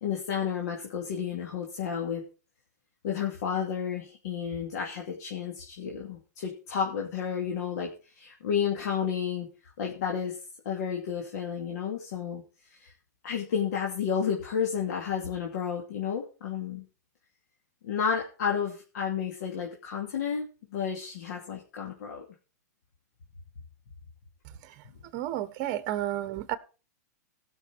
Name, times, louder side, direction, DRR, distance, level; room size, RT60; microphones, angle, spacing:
voice 1, 0.0-2.2 3.0-9.5 9.8-10.4 10.6-12.4 12.7-12.9 13.2-16.8 17.8-22.3, left 7 dB, 70° left, 2.6 m, -31 dB
voice 2, 25.1-26.6, right 13 dB, 45° right, 1.2 m, -32 dB
17.0 x 6.3 x 4.6 m
hypercardioid pair, 135°, 9 cm